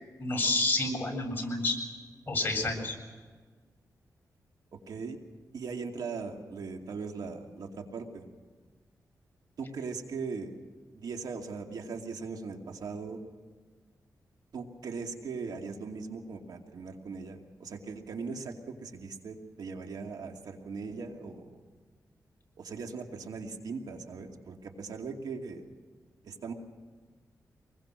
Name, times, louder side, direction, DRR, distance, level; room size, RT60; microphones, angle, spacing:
voice 1, 0.2-1.8 2.3-2.9, left 2 dB, 30° left, 2 dB, 7.7 m, -29 dB
voice 2, 4.9-5.2 5.5-8.3 9.6-10.5 10.9-13.2 14.5-21.6 22.6-25.6 26.2-26.5, right 4 dB, 80° right, 3 dB, 2.6 m, -39 dB
26.5 x 21.5 x 6.4 m, 1.5 s
cardioid pair, 90°, 7 cm